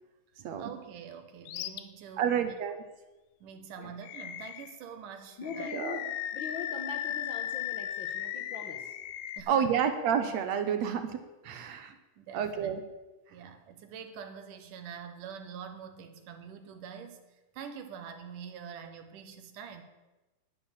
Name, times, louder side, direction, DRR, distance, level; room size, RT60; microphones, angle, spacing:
voice 1, 0.6-2.5 3.4-5.7 9.4-9.9 11.9-12.8 13.3-17.2 17.5-19.8, right 7 dB, 85° right, 7 dB, 2.8 m, -45 dB
Animal, 1.5-1.8 2.3-2.4 4.0-4.8 5.4-9.4, left 12 dB, 80° left, 2.2 m, -37 dB
voice 2, 2.2-2.8 5.7-6.0 9.5-11.9 12.3-12.8, right 8 dB, 70° right, 8 dB, 2.0 m, -29 dB
voice 3, 3.5-3.9 5.4-6.1 6.3-9.0, left 4 dB, 55° left, 2 dB, 1.5 m, -41 dB
11.5 x 9.4 x 7.3 m, 1.1 s
omnidirectional pair, 3.6 m